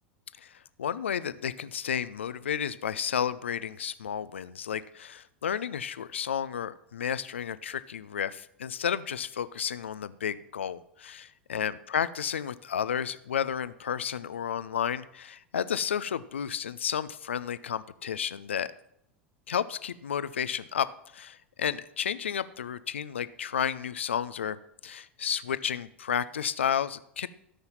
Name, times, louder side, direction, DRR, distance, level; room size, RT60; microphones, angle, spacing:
voice 1, 0.4-18.7 19.5-20.9 21.1-24.6 24.8-27.3, left 8 dB, 80° left, 15 dB, 0.5 m, -32 dB
13.5 x 5.7 x 7.2 m, 0.76 s
hypercardioid pair, 85°, 6 cm